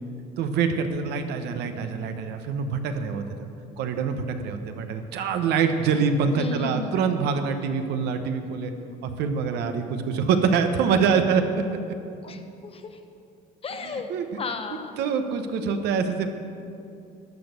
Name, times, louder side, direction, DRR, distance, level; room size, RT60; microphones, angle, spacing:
voice 1, 0.4-3.2 3.8-8.7 9.0-11.4 13.8-14.3 15.0-16.3, right 6 dB, 85° right, 7 dB, 1.0 m, -25 dB
voice 2, 6.4-7.0 12.2-13.0 13.6-14.1 14.3-15.0, left 4 dB, 35° left, 7 dB, 1.0 m, -34 dB
12.0 x 6.2 x 8.3 m, 2.6 s
cardioid pair, 110°, 17 cm